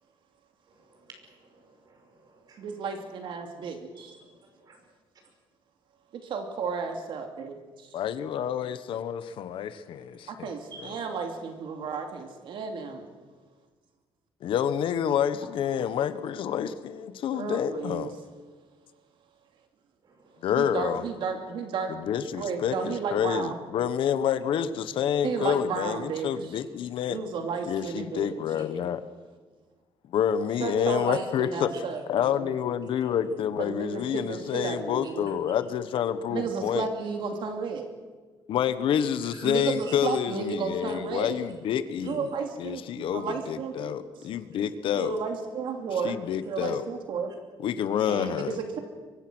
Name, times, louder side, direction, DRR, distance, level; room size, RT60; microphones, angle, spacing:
voice 1, 0.7-2.7 3.9-4.8 10.7-11.0 15.4-15.5 20.0-20.4 28.5-28.6 30.9-31.2 33.0-33.1 39.3-40.0 42.0-42.1, right 3 dB, 45° right, 4 dB, 5.9 m, -50 dB
voice 2, 2.6-4.1 6.3-7.9 10.3-13.1 17.3-18.1 20.6-22.0 22.3-23.6 25.2-26.6 27.1-28.3 30.6-32.5 33.6-35.3 36.3-37.9 39.4-41.4 42.0-44.3 44.9-46.2 46.5-47.3 48.1-48.8, right 5 dB, 60° right, 4 dB, 2.7 m, -33 dB
voice 3, 7.9-10.5 10.8-11.0 14.4-18.1 20.4-21.0 21.9-27.2 27.7-29.0 30.1-31.7 32.1-36.9 38.5-42.2 42.6-45.1 46.0-46.8 47.6-48.5, left 9 dB, 65° left, 12 dB, 1.3 m, -28 dB
24.5 x 23.5 x 6.3 m, 1.4 s
cardioid pair, 155°, 9 cm